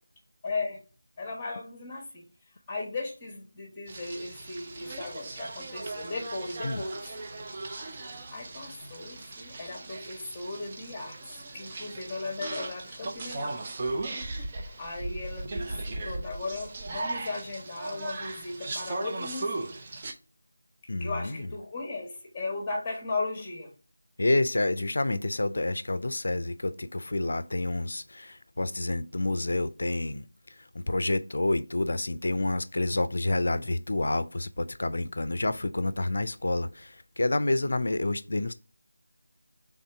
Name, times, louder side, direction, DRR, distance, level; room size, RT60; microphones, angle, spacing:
voice 1, 0.4-0.8 1.2-2.2 2.7-7.0 8.3-11.2 11.5-13.6 14.8-19.7 21.0-23.7, left 3 dB, 15° left, 1.2 m, -36 dB
sound 1, 3.9-20.1, right 2 dB, 25° right, 0.5 m, -37 dB
voice 2, 20.9-21.5 24.2-38.5, left 2 dB, 65° left, 0.4 m, -29 dB
3.5 x 2.7 x 4.4 m
figure-of-eight pair, 170°, 0 cm